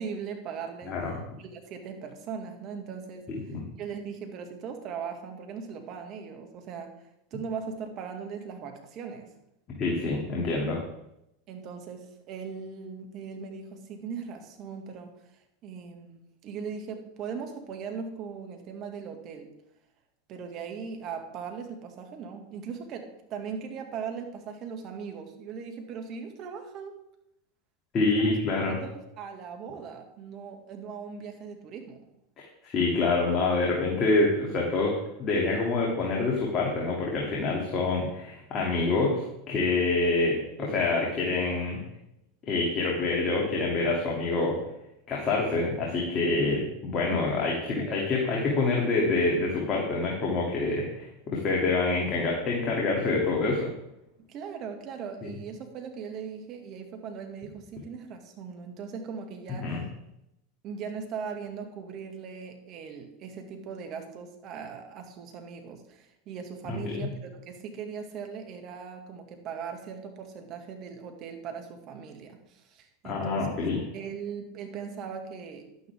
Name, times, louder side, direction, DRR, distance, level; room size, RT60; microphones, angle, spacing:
voice 1, 0.0-0.9 1.4-3.3 3.7-6.9 7.3-9.3 11.5-15.1 15.6-19.5 20.3-27.0 28.2-28.4 28.7-32.1 47.6-48.0 54.2-59.8 60.6-73.7 73.9-75.9, right 6 dB, 45° right, 5 dB, 2.1 m, -39 dB
voice 2, 0.9-1.2 3.3-3.6 9.8-10.8 27.9-28.8 32.6-34.9 35.2-41.8 42.5-44.5 45.1-53.7 55.2-55.3 59.6-59.8 66.7-67.1 73.0-73.8, left 3 dB, 40° left, -2 dB, 2.8 m, -26 dB
11.5 x 9.7 x 3.6 m, 0.82 s
hypercardioid pair, 100°, 0 cm